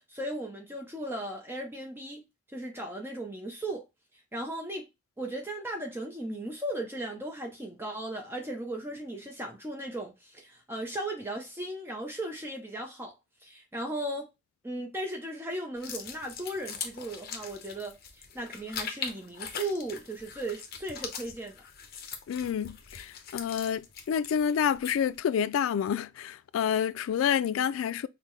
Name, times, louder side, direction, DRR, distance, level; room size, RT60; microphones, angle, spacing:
voice 1, 0.1-2.2 2.5-3.8 4.3-4.9 5.2-13.1 13.4-14.3 14.6-21.6, right 1 dB, 10° right, 0.6 m, -36 dB
sound 1, 15.8-25.2, left 6 dB, 50° left, 0.8 m, -41 dB
voice 2, 22.3-28.1, left 8 dB, 85° left, 0.3 m, -28 dB
5.5 x 2.1 x 3.0 m
head